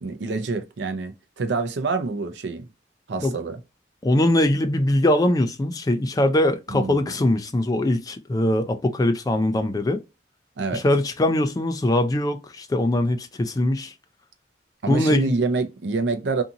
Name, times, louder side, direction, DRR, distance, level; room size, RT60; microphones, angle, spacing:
voice 1, 0.0-2.6 3.1-3.6 6.7-7.1 10.6-10.8 14.8-16.4, right 3 dB, 70° right, 0.5 m, -26 dB
voice 2, 4.0-10.0 10.7-13.9 14.9-15.3, left 1 dB, 20° left, 0.3 m, -22 dB
2.6 x 2.4 x 2.7 m
head